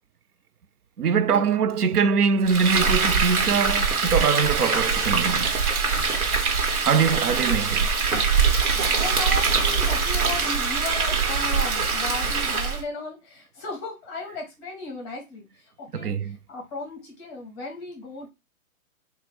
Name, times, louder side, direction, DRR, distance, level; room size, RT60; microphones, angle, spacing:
voice 1, 1.0-5.5 6.9-7.9 15.9-16.4, right 6 dB, 90° right, 0.6 m, -23 dB
Frying (food), 2.5-12.8, right 5 dB, 70° right, 1.4 m, -23 dB
voice 2, 8.5-18.3, left 3 dB, 15° left, 0.7 m, -35 dB
3.1 x 2.4 x 4.2 m
hypercardioid pair, 145°, 44 cm